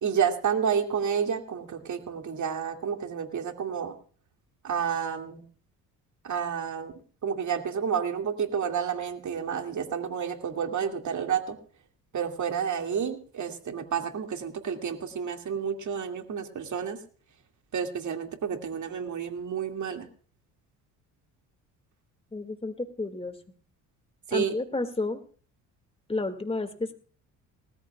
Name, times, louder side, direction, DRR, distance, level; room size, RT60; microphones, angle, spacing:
voice 1, 0.0-4.0 4.6-5.5 6.2-6.9 7.2-11.6 12.1-17.0 17.7-20.1 24.3-24.5, right 7 dB, 50° right, 5 dB, 2.2 m, -30 dB
voice 2, 22.3-23.4 24.3-25.2 26.1-26.9, left 2 dB, 15° left, 7 dB, 2.1 m, -31 dB
19.5 x 14.0 x 2.3 m, 0.43 s
supercardioid pair, 65°, 39 cm